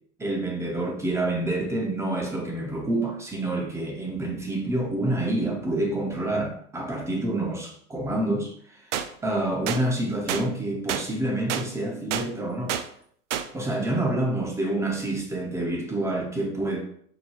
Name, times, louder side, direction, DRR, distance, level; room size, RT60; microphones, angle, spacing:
voice 1, 0.2-8.9 9.2-12.7 13.5-16.8, right 1 dB, 5° right, 0 dB, 0.6 m, -27 dB
sound 1, 8.9-9.1 9.7-9.8 10.3-10.4 10.9-11.0 11.5-11.6 12.1-12.3 12.7-12.8 13.3-13.5, right 9 dB, 55° right, 0.5 m, -28 dB
4.7 x 2.3 x 4.2 m, 0.63 s
hypercardioid pair, 115°, 45 cm